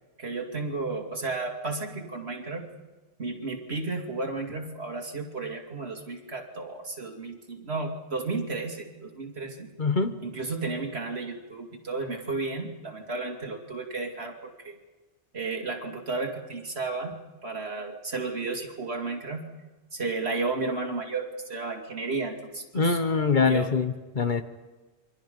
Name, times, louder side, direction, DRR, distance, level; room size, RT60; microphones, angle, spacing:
voice 1, 0.2-2.6 3.2-9.7 10.2-14.7 15.3-17.1 17.4-19.4 19.9-23.0 23.4-23.7, right 3 dB, 65° right, 2 dB, 2.9 m, -33 dB
voice 2, 9.8-10.2 22.7-24.4, left 4 dB, 45° left, 9 dB, 1.2 m, -24 dB
28.5 x 23.5 x 5.4 m, 1.2 s
omnidirectional pair, 1.2 m